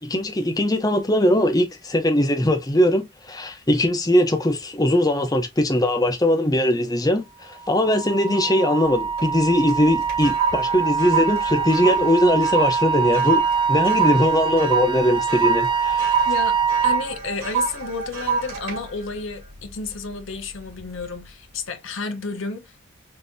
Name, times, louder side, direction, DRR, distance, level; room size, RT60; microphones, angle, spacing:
voice 1, 0.0-13.4 13.7-16.2, left 1 dB, 15° left, 0.7 m, -20 dB
Wind instrument woodwind instrument, 7.6-17.1, right 6 dB, 25° right, 0.4 m, -24 dB
sound 1, 8.8-9.4 9.7-20.2 20.7-21.0, right 5 dB, 80° right, 2.9 m, -27 dB
voice 2, 16.2-16.6 16.8-22.8, left 4 dB, 65° left, 0.9 m, -31 dB
5.4 x 2.7 x 2.7 m
head